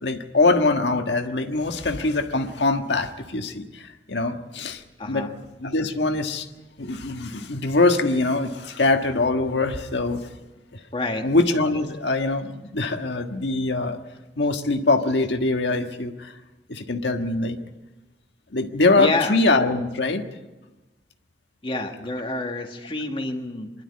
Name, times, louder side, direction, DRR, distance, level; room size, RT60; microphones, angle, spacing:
voice 1, 0.0-5.3 5.6-6.5 6.8-10.2 11.2-14.0 14.4-16.3 16.7-17.6 18.5-20.2, left 3 dB, 85° left, 5 dB, 1.5 m, -23 dB
voice 2, 5.0-5.3 7.3-7.4 10.9-11.3 19.0-19.4 21.6-23.7, left 2 dB, 30° left, 4 dB, 1.9 m, -28 dB
24.5 x 12.0 x 9.6 m, 1.1 s
head